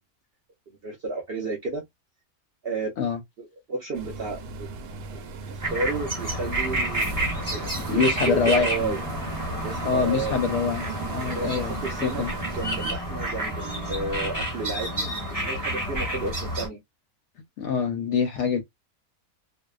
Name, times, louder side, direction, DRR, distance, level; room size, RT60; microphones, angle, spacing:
voice 1, 0.7-1.9 2.6-2.9 3.4-4.7 5.1-9.0 9.6-10.4 11.4-12.2 12.5-16.8, right 3 dB, 65° right, 0.6 m, -32 dB
sound 1, 3.9-12.9, right 3 dB, 85° right, 1.1 m, -37 dB
sound 2, 5.6-16.7, right 1 dB, 15° right, 0.9 m, -30 dB
voice 2, 7.8-9.0 9.8-12.3 17.6-18.6, left 6 dB, 65° left, 0.7 m, -25 dB
2.7 x 2.0 x 2.3 m
omnidirectional pair, 1.6 m